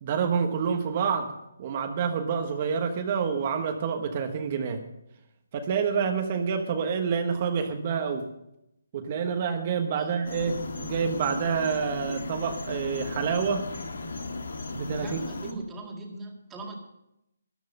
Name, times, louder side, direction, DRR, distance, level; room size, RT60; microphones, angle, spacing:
voice 1, 0.0-1.3 1.6-4.8 5.5-8.3 8.9-13.7 14.7-15.2, right 6 dB, 35° right, 6 dB, 1.2 m, -28 dB
sound 1, 10.2-15.5, left 3 dB, 75° left, 1.9 m, -36 dB
voice 2, 15.0-16.8, right 2 dB, 10° right, 0 dB, 2.1 m, -40 dB
13.5 x 11.5 x 5.4 m, 0.82 s
hypercardioid pair, 165°, 0 cm